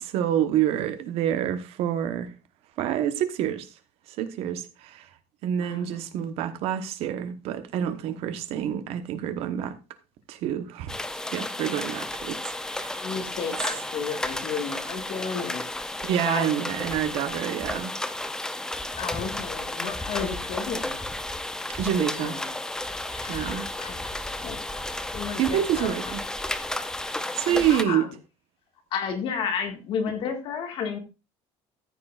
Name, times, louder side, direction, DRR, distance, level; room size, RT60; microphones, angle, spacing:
voice 1, 0.0-2.3 2.8-3.7 4.2-5.1 5.4-9.8 10.3-10.9 11.3-13.1 16.0-17.9 21.8-22.3 23.3-23.7 25.4-26.2 27.3-28.1, right 10 dB, 60° right, 1.1 m, -27 dB
voice 2, 5.6-6.1 12.9-15.6 16.3-16.5 19.0-21.0 22.1-22.5 23.1-24.1 24.4-26.0 26.6-26.7 27.4-28.1 28.9-31.0, left 6 dB, 50° left, 1.9 m, -33 dB
sound 1, 10.9-27.8, left 1 dB, 5° left, 0.6 m, -33 dB
14.0 x 8.6 x 2.5 m
cardioid pair, 160°, 12 cm